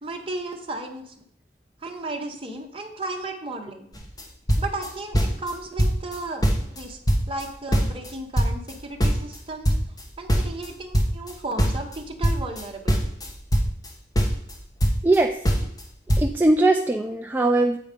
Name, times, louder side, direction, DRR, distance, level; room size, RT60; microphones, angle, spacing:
voice 1, 0.0-1.1 1.8-3.9 4.6-6.4 6.7-7.0 7.3-9.7 10.2-13.0, right 2 dB, 30° right, 3 dB, 1.1 m, -34 dB
sound 1, 3.9-4.2 4.5-5.5 5.8-6.2 6.4-8.1 8.3-11.3 11.6-13.9 14.1-15.2 15.4-15.8 16.1-16.3, equal, 20° left, 1.3 m, -22 dB
voice 2, 16.2-17.8, right 2 dB, 10° right, 3 dB, 0.4 m, -20 dB
8.5 x 4.9 x 5.2 m, 0.69 s
head